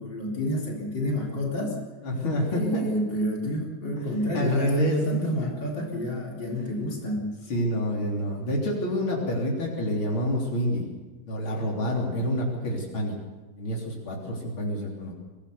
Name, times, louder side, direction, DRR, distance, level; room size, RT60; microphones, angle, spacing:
voice 1, 0.0-1.8 2.5-7.3, equal, 60° left, -2 dB, 4.5 m, -29 dB
voice 2, 2.0-2.9 3.9-4.0 4.3-5.3 7.5-10.9 11.3-13.1 13.6-15.1, equal, 80° left, -2 dB, 4.3 m, -28 dB
24.5 x 18.5 x 7.0 m, 1.2 s
omnidirectional pair, 2.2 m